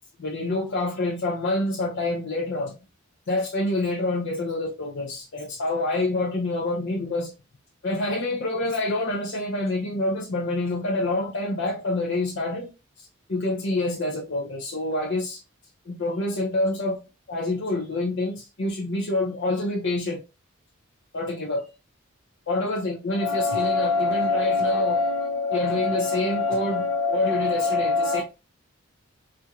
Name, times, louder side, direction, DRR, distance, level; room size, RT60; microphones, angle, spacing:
voice 1, 0.2-2.7 3.3-7.3 7.8-12.7 13.0-15.4 15.9-17.0 17.3-20.2 21.1-21.7 22.5-28.2, left 2 dB, 60° left, 0.6 m, -26 dB
4.4 x 2.5 x 2.3 m
head